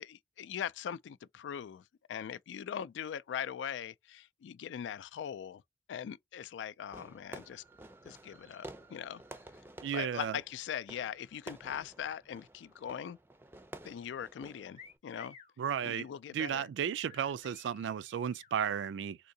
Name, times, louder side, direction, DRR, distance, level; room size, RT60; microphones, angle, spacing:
voice 1, 0.0-5.6 5.9-7.6 8.0-9.2 9.9-13.2 13.8-15.4 15.8-16.7, left 8 dB, 90° left, 0.3 m, -41 dB
Fireworks, 6.9-15.0, right 2 dB, 10° right, 0.4 m, -52 dB
voice 2, 9.8-10.4 15.6-16.1 16.3-19.2, right 8 dB, 85° right, 0.3 m, -34 dB
sound 1, 14.7-15.5 17.1-18.5, left 6 dB, 35° left, 0.7 m, -54 dB
3.6 x 2.7 x 2.6 m
head